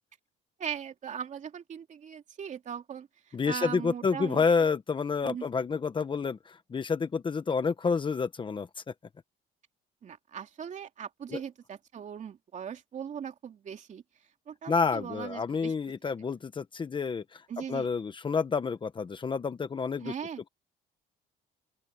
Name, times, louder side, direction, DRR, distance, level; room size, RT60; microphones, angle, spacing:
voice 1, 0.6-4.4 5.2-5.5 10.0-14.0 14.5-15.7 17.5-17.9 20.0-20.4, right 8 dB, 45° right, 3.0 m, -39 dB
voice 2, 3.3-8.7 11.3-11.4 14.7-17.4 17.7-20.1, left 5 dB, 30° left, 1.3 m, -29 dB
open air
cardioid pair, 110°, 17 cm